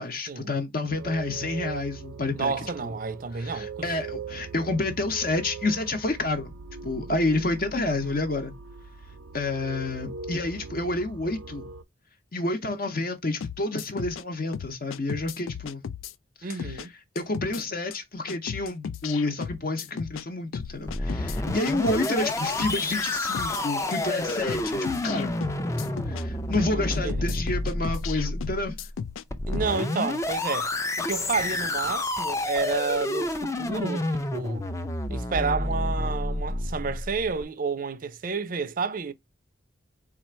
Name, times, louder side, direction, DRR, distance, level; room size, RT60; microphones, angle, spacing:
voice 1, 0.0-2.5 2.8-2.9 3.3-6.5 6.8-8.5 9.3-11.7 12.3-15.8 16.4-16.9 17.1-25.4 26.0-28.8, left 2 dB, 45° left, 0.7 m, -29 dB
sound 1, 0.8-11.8, right 5 dB, 85° right, 0.6 m, -41 dB
voice 2, 2.3-3.7 8.0-8.1 16.4-16.9 26.6-27.4 29.5-30.7 31.0-34.7 35.1-39.1, right 4 dB, 45° right, 0.4 m, -30 dB
sound 2, 13.4-14.2 14.5-16.1 16.5-16.9 17.2-17.6 17.9-18.0 18.3-20.2 20.5-22.1 22.5-22.9 23.2-23.6 23.9-24.0 24.3-26.2 26.5-29.2 29.5-29.7, left 7 dB, 85° left, 0.4 m, -36 dB
sound 3, 20.6-37.4, left 2 dB, 15° left, 0.4 m, -29 dB
4.3 x 2.4 x 4.3 m
head